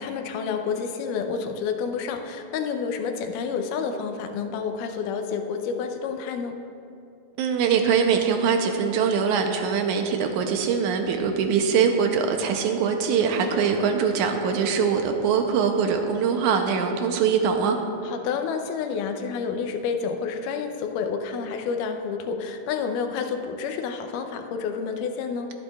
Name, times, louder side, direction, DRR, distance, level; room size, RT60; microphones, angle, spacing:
voice 1, 0.0-6.6 13.4-13.8 18.0-25.5, left 6 dB, 80° left, 5 dB, 2.2 m, -29 dB
voice 2, 7.4-17.8, right 6 dB, 80° right, 4 dB, 1.9 m, -23 dB
22.5 x 8.1 x 2.3 m, 2.6 s
omnidirectional pair, 3.8 m